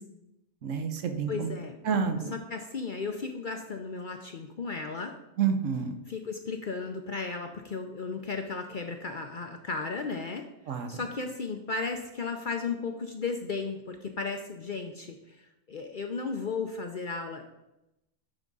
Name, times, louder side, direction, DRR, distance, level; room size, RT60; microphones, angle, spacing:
voice 1, 0.6-1.5 1.8-2.3 5.4-5.9 10.7-10.9, right 6 dB, 70° right, 7 dB, 1.2 m, -28 dB
voice 2, 1.3-1.8 2.3-5.1 6.1-10.5 10.9-17.4, left 4 dB, 50° left, 4 dB, 0.6 m, -35 dB
10.5 x 3.6 x 5.3 m, 0.90 s
omnidirectional pair, 1.4 m